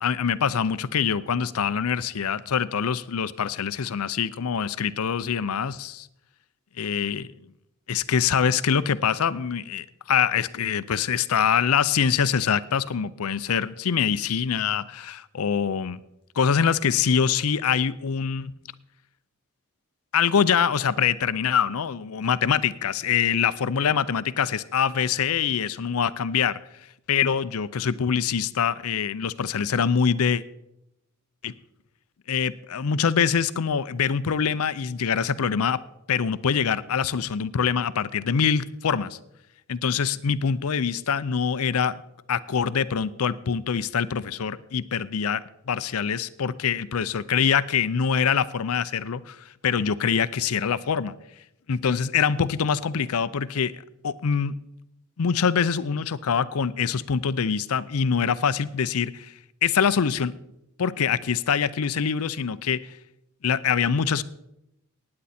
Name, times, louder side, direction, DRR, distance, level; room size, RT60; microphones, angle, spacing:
voice 1, 0.0-6.1 6.8-7.3 7.9-16.0 16.4-18.5 20.1-26.6 27.1-30.4 31.4-31.5 32.3-35.8 36.1-39.2 39.7-42.0 42.3-51.2 51.7-53.7 54.0-54.5 55.2-59.3 59.6-60.3 60.8-62.8 63.4-64.2, left 7 dB, 85° left, 16 dB, 0.5 m, -24 dB
16.0 x 9.7 x 4.2 m, 0.85 s
head